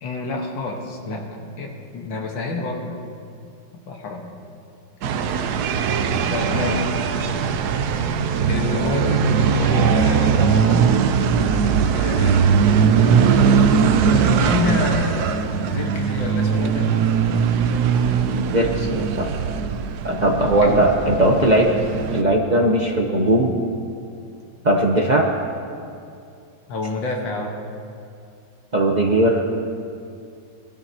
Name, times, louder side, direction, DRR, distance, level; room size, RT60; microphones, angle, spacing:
voice 1, 0.0-1.3 1.6-2.9 3.9-4.3 6.3-6.9 8.5-10.9 11.6-12.4 14.0-16.9 20.4-20.9 26.7-27.6, left 3 dB, 80° left, 1 dB, 2.0 m, -28 dB
sound 1, 5.0-22.2, right 6 dB, 70° right, 1.0 m, -20 dB
voice 2, 6.5-6.8 18.3-19.4 20.0-21.8 22.1-23.6 24.6-25.3 28.7-29.4, right 1 dB, 40° right, 1 dB, 0.6 m, -19 dB
20.5 x 12.5 x 2.8 m, 2.4 s
omnidirectional pair, 2.0 m